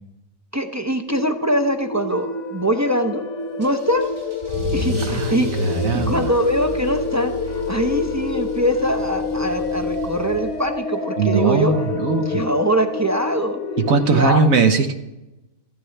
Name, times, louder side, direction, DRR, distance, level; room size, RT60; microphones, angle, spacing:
voice 1, 0.5-3.3 3.6-4.1 4.7-5.5 5.9-7.4 7.7-11.7 12.2-13.6 14.1-14.4, equal, 25° right, 5 dB, 0.4 m, -22 dB
sound 1, 1.1-14.2, left 4 dB, 65° left, 1.5 m, -27 dB
Car / Engine starting / Accelerating revving vroom, 3.6-10.8, equal, 75° right, 2.4 m, -31 dB
voice 2, 5.1-6.3 11.2-12.5 13.8-14.9, right 4 dB, 90° right, 6 dB, 1.5 m, -20 dB
15.5 x 14.5 x 3.3 m, 0.98 s
omnidirectional pair, 1.4 m